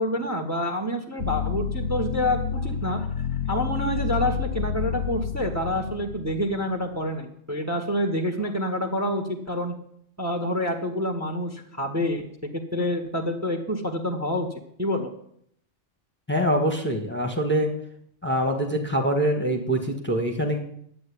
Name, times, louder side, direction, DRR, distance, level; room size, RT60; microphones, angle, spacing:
voice 1, 0.0-3.1 3.5-9.7 10.2-12.2 12.5-14.5 14.8-15.1, equal, 10° right, 5 dB, 1.4 m, -27 dB
sound 1, 1.2-7.0, left 7 dB, 85° left, 1.1 m, -29 dB
voice 2, 16.3-17.7 18.2-20.6, right 1 dB, 10° left, 3 dB, 1.5 m, -24 dB
11.0 x 8.7 x 8.4 m, 0.69 s
omnidirectional pair, 1.3 m